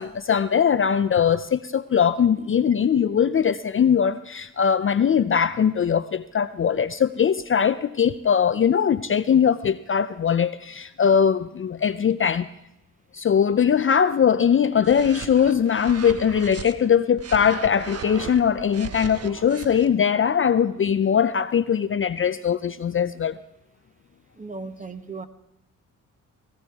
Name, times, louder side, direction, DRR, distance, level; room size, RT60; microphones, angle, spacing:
voice 1, 0.0-12.5 13.1-23.4, left 7 dB, 40° left, 0.5 m, -21 dB
sound 1, 14.8-16.7 17.2-19.9, right 6 dB, 45° right, 1.1 m, -37 dB
voice 2, 24.4-25.3, right 3 dB, 20° right, 1.2 m, -36 dB
19.0 x 17.0 x 3.5 m
cardioid pair, 70°, 34 cm